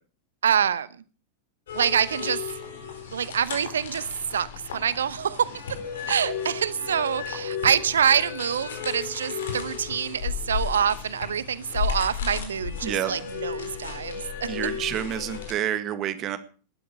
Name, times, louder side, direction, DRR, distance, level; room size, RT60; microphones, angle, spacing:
voice 1, 0.4-0.9 1.7-2.4 3.1-4.0 4.3-5.5 6.1-14.5, right 8 dB, 65° right, 18 dB, 0.9 m, -25 dB
sound 1, 1.7-15.5, left 7 dB, 60° left, 4.6 m, -34 dB
voice 2, 14.5-16.4, right 11 dB, 35° right, 12 dB, 1.7 m, -28 dB
19.0 x 12.5 x 4.9 m, 0.39 s
figure-of-eight pair, 90°, 0 cm